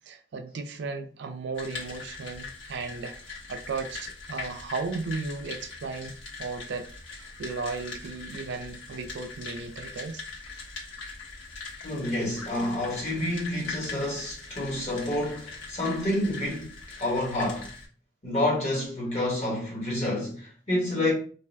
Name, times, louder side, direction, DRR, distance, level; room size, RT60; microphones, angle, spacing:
voice 1, 0.1-6.9 7.1-10.2, right 4 dB, 60° right, 0.4 m, -35 dB
sound 1, 1.6-17.9, left 4 dB, 80° left, 1.0 m, -41 dB
voice 2, 11.8-17.7 18.2-21.1, left 1 dB, 35° left, 1.2 m, -29 dB
2.4 x 2.3 x 3.2 m
head